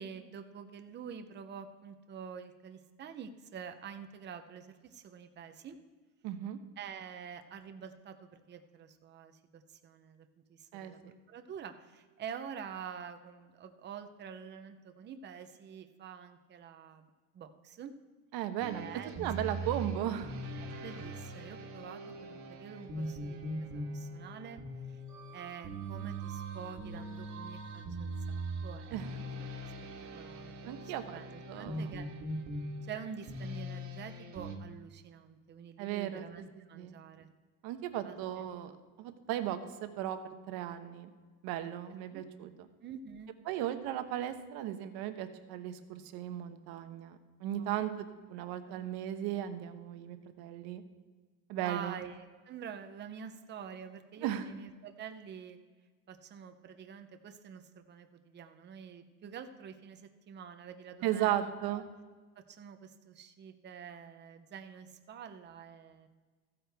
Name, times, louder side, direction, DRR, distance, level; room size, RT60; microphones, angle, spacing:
voice 1, 0.0-5.8 6.8-11.0 11.3-17.9 18.7-19.1 19.6-19.7 20.5-24.6 24.9-25.0 25.3-29.5 30.1-32.1 32.8-37.3 38.0-38.5 42.1-42.2 42.8-43.4 47.6-47.9 48.3-48.8 51.5-55.6 56.1-61.8 62.5-66.1, right 7 dB, 25° right, 7 dB, 0.7 m, -47 dB
voice 2, 6.2-6.6 10.7-10.9 18.3-18.9 19.2-20.4 28.9-29.1 30.6-31.2 31.5-32.0 35.8-36.3 36.7-37.0 37.6-38.7 39.0-41.1 41.4-42.7 43.5-50.8 51.5-52.0 54.2-54.4 61.0-61.8, right 11 dB, 55° right, 8 dB, 1.1 m, -36 dB
sound 1, 18.6-34.6, right 1 dB, 40° right, 1.7 m, -41 dB
15.0 x 8.9 x 3.5 m, 1.4 s
cardioid pair, 150°, 43 cm